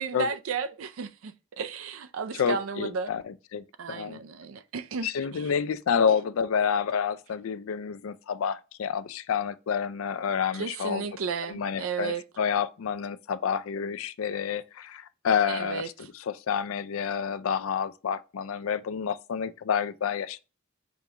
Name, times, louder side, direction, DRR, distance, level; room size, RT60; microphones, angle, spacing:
voice 1, 0.0-3.1 3.8-5.5 10.5-12.2 15.5-16.1, right 5 dB, 85° right, 0.5 m, -34 dB
voice 2, 2.3-4.2 5.0-11.0 11.5-20.4, left 7 dB, 90° left, 0.4 m, -29 dB
5.2 x 3.6 x 2.8 m
head